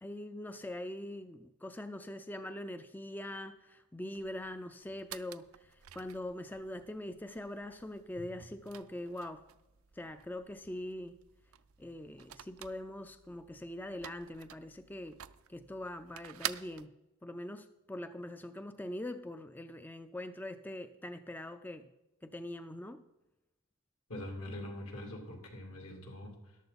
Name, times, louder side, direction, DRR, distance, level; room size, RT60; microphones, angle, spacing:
voice 1, 0.0-9.5 9.9-11.1 11.8-15.2 15.5-16.9 17.2-21.9 22.2-23.0, left 1 dB, 10° left, 10 dB, 0.3 m, -43 dB
sound 1, 4.1-16.9, right 11 dB, 80° right, 0.5 m, -49 dB
Drum, 8.2-10.6, left 1 dB, 65° left, 3.7 m, -58 dB
voice 2, 24.1-26.6, left 1 dB, 80° left, 1 dB, 2.6 m, -43 dB
13.5 x 11.5 x 4.0 m, 1.0 s
head